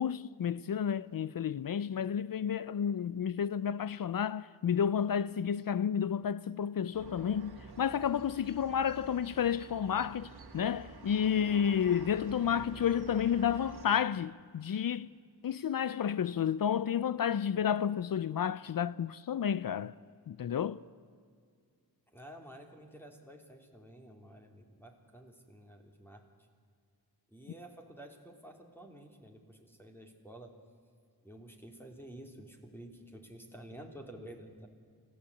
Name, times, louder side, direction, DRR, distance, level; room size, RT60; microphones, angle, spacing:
voice 1, 0.0-15.1 15.4-19.9 20.3-20.8, left 8 dB, 65° left, 0.6 m, -31 dB
sound 1, 6.9-13.9, right 4 dB, 80° right, 2.0 m, -49 dB
voice 2, 22.1-26.2 27.3-30.5 31.2-34.7, right 1 dB, 5° left, 3.1 m, -51 dB
25.0 x 16.0 x 8.5 m
wide cardioid pair, 80°, 38 cm